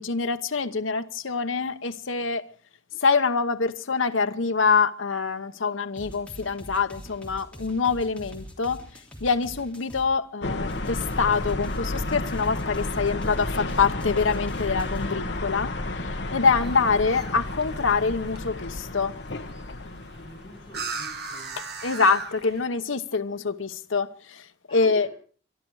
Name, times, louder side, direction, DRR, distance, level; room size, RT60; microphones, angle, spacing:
voice 1, 0.0-2.4 2.9-8.8 9.2-15.7 16.3-19.1 21.6-24.4 24.7-25.1, left 5 dB, 85° left, 1.0 m, -25 dB
sound 1, 6.0-10.1 10.7-15.1, equal, 5° left, 3.2 m, -43 dB
sound 2, 10.4-21.2, left 2 dB, 60° left, 1.3 m, -32 dB
sound 3, 16.2-22.7, right 4 dB, 55° right, 2.1 m, -40 dB
voice 2, 20.1-21.6 24.7-25.1, equal, 25° left, 7.6 m, -46 dB
24.5 x 12.0 x 4.8 m
head